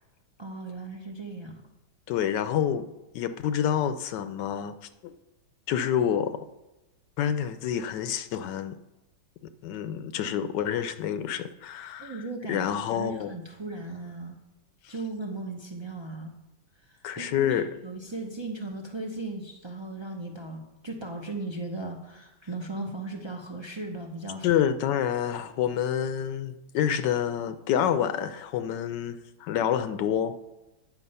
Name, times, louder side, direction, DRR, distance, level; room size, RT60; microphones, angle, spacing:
voice 1, 0.4-1.5 12.0-12.6 12.9-14.4 14.9-16.3 16.9-17.5 17.8-24.5, right 2 dB, 35° right, 1 dB, 0.4 m, -37 dB
voice 2, 2.1-2.9 3.1-4.7 5.0-5.1 5.7-6.5 7.2-8.8 9.6-12.2 12.5-13.3 14.8-14.9 17.0-17.7 24.4-30.4, left 9 dB, 80° left, 10 dB, 1.2 m, -28 dB
9.4 x 7.5 x 5.4 m, 1.0 s
omnidirectional pair, 1.9 m